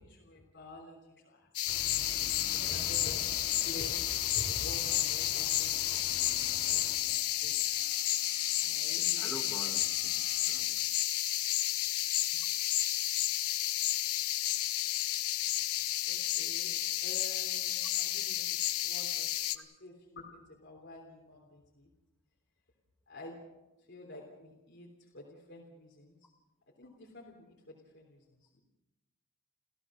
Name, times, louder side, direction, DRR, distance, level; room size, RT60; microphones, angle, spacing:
voice 1, 0.0-1.5 2.1-4.1 4.3-7.9 8.6-9.7 12.1-12.4 12.8-12.9 15.2-15.6 16.0-16.7 17.0-21.9 23.1-23.4 23.8-26.3 26.8-28.6, left 1 dB, 50° left, -1 dB, 3.4 m, -49 dB
sound 1, 1.5-19.5, left 14 dB, 80° left, 1.0 m, -31 dB
sound 2, 1.7-7.0, left 2 dB, 20° left, 3.3 m, -47 dB
sound 3, 6.0-10.7, right 3 dB, 20° right, 6.5 m, -61 dB
voice 2, 8.9-10.9 19.6-19.7, equal, 5° left, 4 dB, 2.0 m, -48 dB
29.5 x 15.5 x 6.3 m, 0.98 s
head